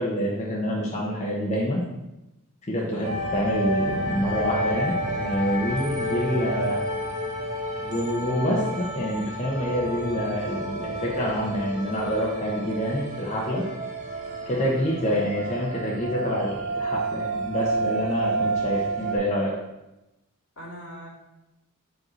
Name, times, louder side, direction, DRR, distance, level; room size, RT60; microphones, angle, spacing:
voice 1, 0.0-1.8 2.7-6.8 7.8-13.6 14.5-19.5, equal, 30° left, -4 dB, 1.0 m, -27 dB
voice 2, 2.8-3.1 5.7-5.9 14.5-14.7 20.6-21.1, right 1 dB, 70° left, -4 dB, 2.2 m, -41 dB
sound 1, 3.0-19.2, right 1 dB, 35° right, 1.2 m, -30 dB
5.2 x 4.6 x 6.3 m, 0.96 s
head